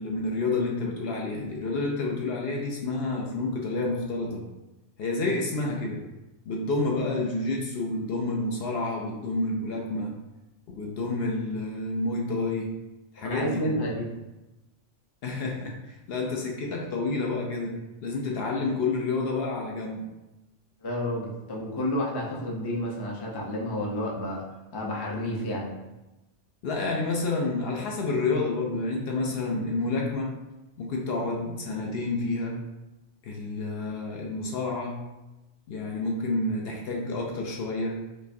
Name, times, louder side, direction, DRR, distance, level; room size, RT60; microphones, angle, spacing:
voice 1, 0.0-4.4 5.0-6.0 6.5-10.1 10.7-12.7 13.1-14.0 15.2-20.1 26.6-30.3 30.8-32.6 33.2-35.0 35.7-38.0, left 3 dB, 65° left, 0 dB, 0.7 m, -29 dB
voice 2, 13.2-14.1 20.8-24.4 24.7-25.7, equal, 30° left, -3 dB, 0.4 m, -30 dB
5.0 x 2.2 x 2.6 m, 1.0 s
omnidirectional pair, 1.2 m